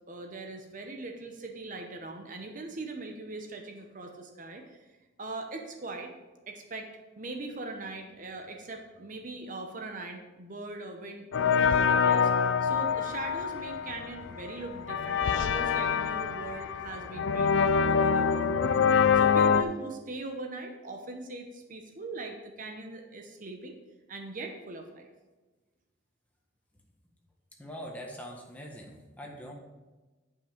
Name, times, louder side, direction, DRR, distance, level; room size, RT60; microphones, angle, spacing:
voice 1, 0.1-4.9 5.2-6.1 6.5-6.9 7.2-18.9 19.1-23.8 24.1-25.1, right 2 dB, 45° right, 4 dB, 0.8 m, -41 dB
sound 1, 11.3-19.6, left 6 dB, 70° left, 0.4 m, -25 dB
voice 2, 27.6-29.5, equal, 10° left, -1 dB, 1.4 m, -43 dB
10.0 x 5.7 x 5.1 m, 1.2 s
head